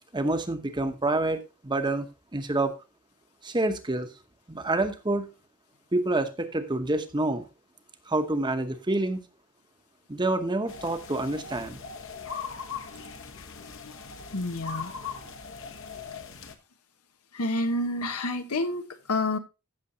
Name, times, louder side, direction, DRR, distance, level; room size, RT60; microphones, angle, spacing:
voice 1, 0.1-2.1 2.3-2.7 3.4-4.1 4.5-5.3 5.9-7.5 8.1-9.2 10.1-11.8, right 2 dB, 20° right, 1.0 m, -27 dB
sound 1, 10.7-16.5, left 5 dB, 60° left, 1.3 m, -40 dB
voice 2, 12.9-14.1 14.3-14.9 17.3-19.4, left 2 dB, 90° left, 1.3 m, -30 dB
15.0 x 6.6 x 2.8 m
head